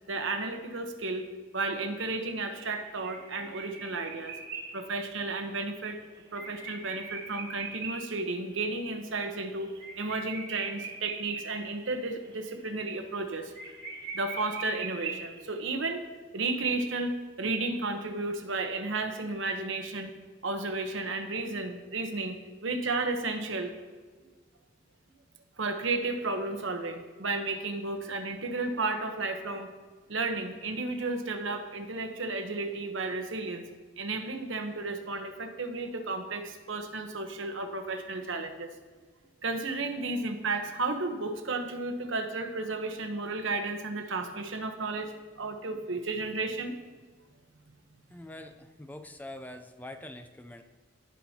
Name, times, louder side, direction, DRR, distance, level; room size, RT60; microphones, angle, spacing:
voice 1, 0.1-4.4 4.7-6.0 6.3-13.5 14.1-16.0 16.3-20.1 20.4-23.7 25.6-29.7 30.1-33.7 34.0-38.7 39.4-46.7, right 3 dB, 75° right, 6 dB, 1.0 m, -33 dB
sound 1, 2.0-8.1 8.5-8.6 8.9-9.0 9.3-11.9 12.2-12.6 12.8-12.9 13.2-13.3 13.5-15.6, right 5 dB, 55° right, 1.6 m, -41 dB
voice 2, 48.1-50.6, left 1 dB, 10° left, 7 dB, 0.4 m, -44 dB
17.0 x 5.8 x 2.8 m, 1.4 s
head